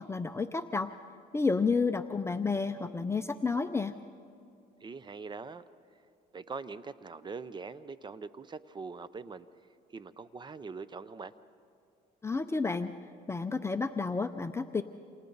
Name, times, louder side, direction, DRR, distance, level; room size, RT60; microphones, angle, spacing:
voice 1, 0.1-0.9 1.3-4.0 12.2-12.9 13.3-14.8, left 4 dB, 15° left, 8 dB, 0.6 m, -30 dB
voice 2, 4.8-5.6 6.3-9.5 9.9-11.3, right 4 dB, 25° right, 15 dB, 0.6 m, -42 dB
29.0 x 27.5 x 4.0 m, 2.4 s
cardioid pair, 110°, 17 cm